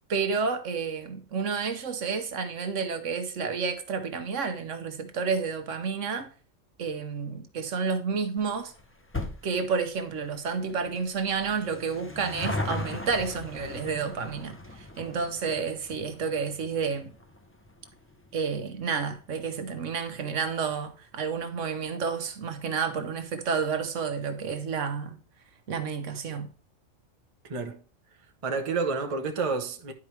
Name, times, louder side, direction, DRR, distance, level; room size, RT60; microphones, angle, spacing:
voice 1, 0.1-6.3 6.8-8.7 9.4-17.1 18.3-25.2 25.7-26.5, right 5 dB, 70° right, 1.2 m, -30 dB
sound 1, 8.4-21.1 21.4-21.5 22.4-22.5 22.7-22.8 23.1-23.2, left 2 dB, 20° left, 0.4 m, -40 dB
voice 2, 27.4-27.8 28.4-29.9, right 4 dB, 30° right, 0.7 m, -29 dB
11.0 x 4.8 x 3.2 m
omnidirectional pair, 1.4 m